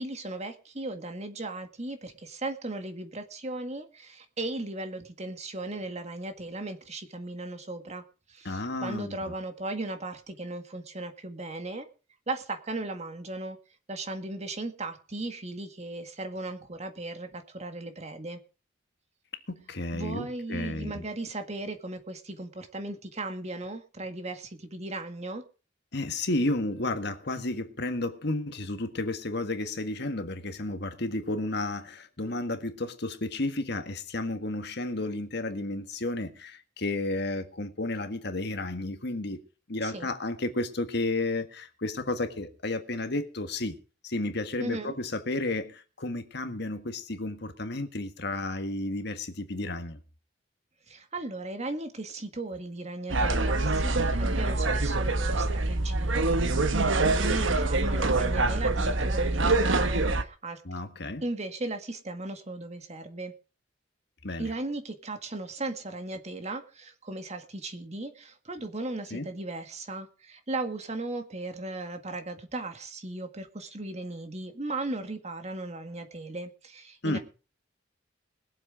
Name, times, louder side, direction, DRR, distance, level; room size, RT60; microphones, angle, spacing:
voice 1, 0.0-8.0 8.3-11.9 12.3-13.6 13.9-18.4 19.9-25.5 39.8-40.1 44.6-45.0 50.9-56.3 56.5-60.6 61.2-63.3 64.4-77.2, right 2 dB, 35° right, 1.8 m, -37 dB
voice 2, 8.5-9.3 19.5-21.0 25.9-39.4 39.7-43.8 44.0-50.0 60.7-61.2 64.2-64.5 69.1-69.3 77.0-77.2, left 2 dB, 60° left, 1.7 m, -32 dB
sound 1, 53.1-60.2, right 2 dB, 80° right, 1.2 m, -25 dB
21.0 x 7.7 x 4.9 m
head